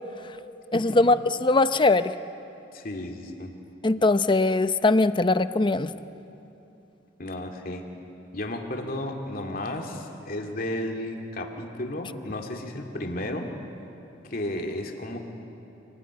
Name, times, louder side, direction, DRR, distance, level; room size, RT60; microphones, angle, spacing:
voice 1, 0.7-2.1 3.8-5.9, left 2 dB, 25° left, 12 dB, 0.6 m, -21 dB
voice 2, 2.7-3.5 7.2-7.8 8.3-13.5 14.3-15.3, left 1 dB, 50° left, 2 dB, 2.6 m, -33 dB
28.0 x 19.0 x 9.6 m, 2.9 s
head